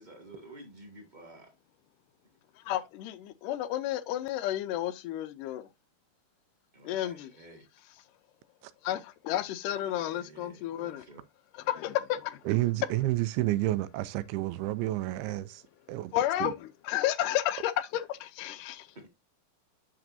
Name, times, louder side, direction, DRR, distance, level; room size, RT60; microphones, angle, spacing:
voice 1, 0.0-1.5 6.7-7.6 9.7-11.2 15.2-15.3 18.9-19.1, right 1 dB, 20° right, 1.3 m, -51 dB
voice 2, 2.7-5.7 6.8-7.3 8.8-11.1 11.5-12.4 16.1-18.9, left 12 dB, 90° left, 1.8 m, -32 dB
voice 3, 12.5-15.6 15.9-16.5, right 16 dB, 85° right, 2.6 m, -30 dB
9.0 x 6.0 x 2.6 m
omnidirectional pair, 4.5 m